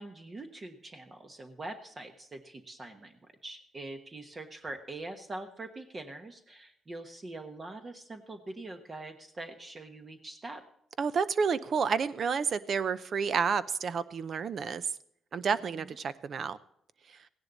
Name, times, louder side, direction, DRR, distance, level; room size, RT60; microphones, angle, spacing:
voice 1, 0.0-10.6 15.6-15.9, right 2 dB, 30° right, 6 dB, 1.2 m, -43 dB
voice 2, 11.0-14.9 15.3-16.6 17.1-17.2, right 6 dB, 55° right, 15 dB, 0.7 m, -30 dB
16.0 x 10.5 x 4.0 m, 0.72 s
cardioid pair, 90°, 0 cm